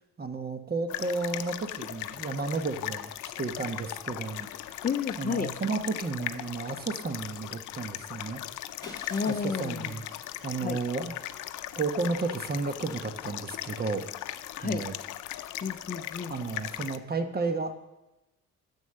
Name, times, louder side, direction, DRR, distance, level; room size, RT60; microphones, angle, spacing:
voice 1, 0.2-4.5 4.8-4.9 5.2-8.4 9.3-10.1 10.4-11.2 11.8-14.0 14.6-14.9 16.3-17.7, right 3 dB, 30° right, 8 dB, 1.1 m, -32 dB
sound 1, 0.9-17.0, left 13 dB, 80° left, 0.6 m, -39 dB
voice 2, 4.8-5.5 9.1-9.9 10.6-10.8 14.6-14.8 15.6-16.3, left 6 dB, 30° left, 9 dB, 0.6 m, -31 dB
Shatter, 8.8-11.5, left 2 dB, 15° left, 3.1 m, -50 dB
9.4 x 7.4 x 6.6 m, 0.97 s
cardioid pair, 90°, 30 cm